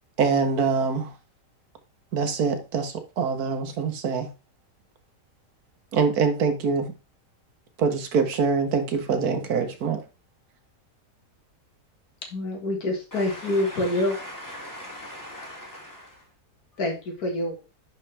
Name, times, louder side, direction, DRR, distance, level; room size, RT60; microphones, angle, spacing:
voice 1, 0.2-1.1 2.1-4.3 5.9-6.9 7.8-10.0, right 5 dB, 70° right, 1.4 m, -24 dB
voice 2, 12.3-14.2 16.8-17.6, left 1 dB, 65° left, 2.2 m, -26 dB
voice 3, 13.1-16.2, left 1 dB, 10° left, 2.7 m, -40 dB
10.5 x 4.5 x 3.3 m
omnidirectional pair, 1.7 m